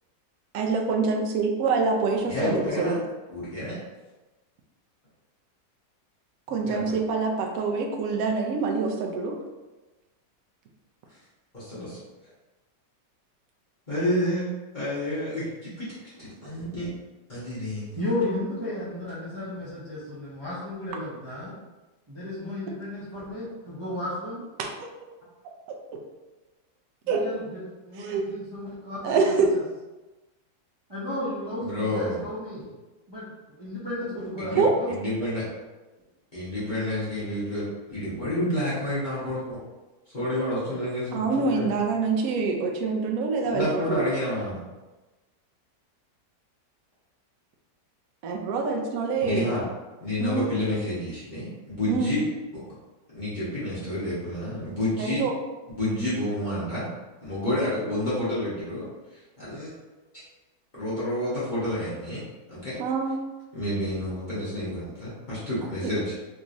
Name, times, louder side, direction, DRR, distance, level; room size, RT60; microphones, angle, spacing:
voice 1, 0.5-3.0 6.5-9.3 24.6-24.7 27.1-27.2 28.1-28.2 29.0-29.5 34.6-34.7 41.1-44.0 48.2-49.5 50.2-50.5 51.9-52.1 55.0-55.3 62.8-63.2 65.8-65.9, right 4 dB, 70° right, 2 dB, 0.9 m, -25 dB
voice 2, 2.2-3.0 3.3-3.8 6.5-7.0 11.5-12.0 13.9-16.9 17.3-18.0 31.6-32.2 34.4-35.4 36.3-39.6 40.1-41.7 43.4-44.6 49.2-49.6 50.0-51.5 51.7-52.3 52.5-52.6 53.1-55.2 55.8-56.9 57.2-58.8 59.1-59.7 60.7-62.2 62.5-62.8 63.5-66.1, left 1 dB, 30° left, -11 dB, 1.0 m, -29 dB
voice 3, 18.0-21.5 22.1-24.4 27.0-29.6 30.9-32.7 33.1-34.9, left 1 dB, 25° right, -10 dB, 0.5 m, -34 dB
3.5 x 3.0 x 2.5 m, 1.1 s
omnidirectional pair, 1.9 m